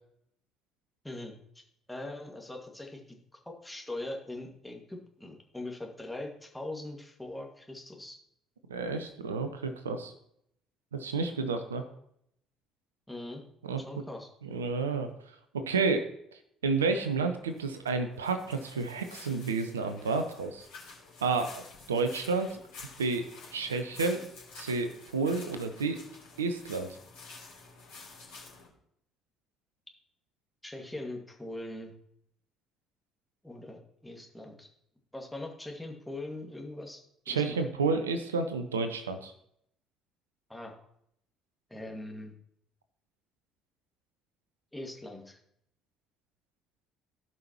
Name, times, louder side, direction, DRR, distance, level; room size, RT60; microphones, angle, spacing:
voice 1, 1.0-1.3 1.9-8.2 13.1-13.4 13.8-14.3 30.6-31.9 33.4-34.7 35.1-37.6 40.5-40.7 41.7-42.3 44.7-45.4, left 2 dB, 5° left, 1 dB, 2.1 m, -41 dB
voice 2, 8.7-10.1 10.9-11.8 13.6-13.8 14.4-15.1 15.5-16.1 16.6-20.7 21.2-21.6 21.9-22.6 23.0-24.2 24.6-26.0 26.4-26.9 37.3-39.3, right 4 dB, 80° right, 8 dB, 0.7 m, -30 dB
sound 1, 17.0-28.7, left 4 dB, 70° left, 3.5 m, -50 dB
16.5 x 5.5 x 3.0 m, 0.72 s
figure-of-eight pair, 50°, 0 cm